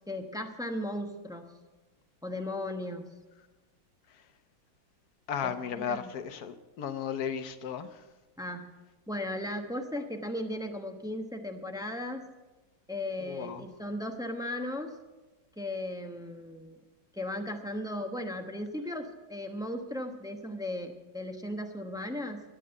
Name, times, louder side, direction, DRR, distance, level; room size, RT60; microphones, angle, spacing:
voice 1, 0.1-1.5 2.2-3.0 5.4-6.1 8.4-8.7 9.1-12.3 12.9-14.9 15.6-16.8 17.1-22.4, left 1 dB, 5° right, 4 dB, 0.6 m, -36 dB
voice 2, 5.3-7.9 13.2-13.6, left 7 dB, 60° left, 10 dB, 1.3 m, -35 dB
13.0 x 9.9 x 7.9 m, 1.2 s
omnidirectional pair, 2.1 m